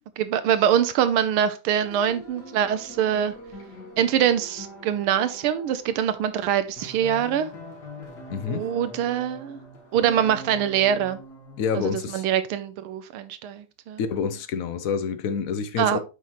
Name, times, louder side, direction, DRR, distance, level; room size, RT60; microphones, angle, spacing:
voice 1, 0.2-3.4 4.0-7.5 8.5-9.6 9.9-11.2 11.7-14.0 15.8-16.0, right 9 dB, 85° right, 1.6 m, -24 dB
sound 1, 1.8-12.1, left 1 dB, 50° left, 2.3 m, -43 dB
voice 2, 8.3-8.7 11.6-12.2 14.0-16.0, left 6 dB, 85° left, 0.7 m, -27 dB
8.2 x 5.8 x 3.1 m
omnidirectional pair, 2.3 m